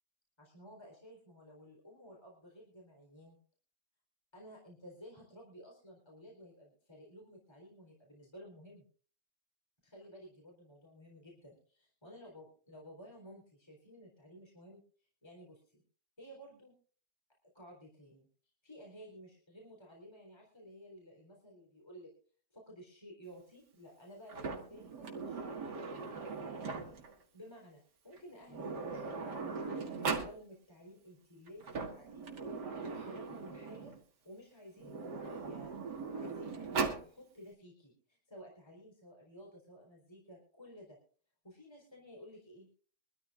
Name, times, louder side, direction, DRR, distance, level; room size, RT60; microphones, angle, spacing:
voice 1, 0.4-3.4 4.3-8.9 9.8-14.8 15.2-15.8 16.2-16.8 17.5-18.3 18.6-22.1 22.5-27.0 27.3-32.3 32.7-33.9 34.2-41.0 41.4-42.7, equal, 15° left, -2 dB, 4.0 m, -54 dB
Sliding door, 24.3-27.2 28.1-28.2 28.5-30.4 31.5-34.0 34.8-37.1, right 4 dB, 80° right, 2.6 m, -39 dB
23.5 x 13.5 x 2.5 m, 0.41 s
omnidirectional pair, 1.8 m